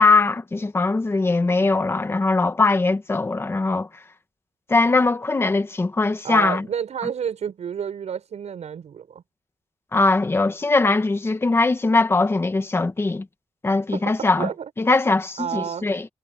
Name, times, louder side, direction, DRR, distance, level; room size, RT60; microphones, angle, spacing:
voice 1, 0.0-3.9 4.7-6.7 9.9-13.3 13.6-14.5 14.8-16.1, left 3 dB, 20° left, 1.7 m, -20 dB
voice 2, 6.2-9.2 13.9-14.7 15.4-15.9, right 8 dB, 70° right, 7.2 m, -30 dB
wide cardioid pair, 180°, 12 cm